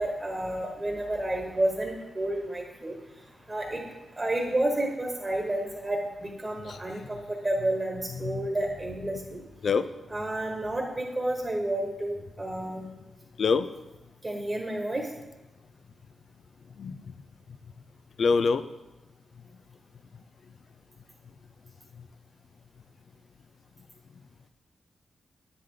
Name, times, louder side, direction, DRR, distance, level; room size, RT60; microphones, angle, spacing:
voice 1, 0.0-3.8 4.1-9.5 10.1-12.9 14.2-15.1, right 1 dB, 20° right, 0 dB, 1.4 m, -30 dB
voice 2, 8.1-8.5 9.1-9.3 9.6-9.9 13.4-13.7 16.8-17.1 18.2-18.6, left 5 dB, 55° left, 13 dB, 0.5 m, -26 dB
10.5 x 9.5 x 3.9 m, 1.1 s
wide cardioid pair, 145°, 0 cm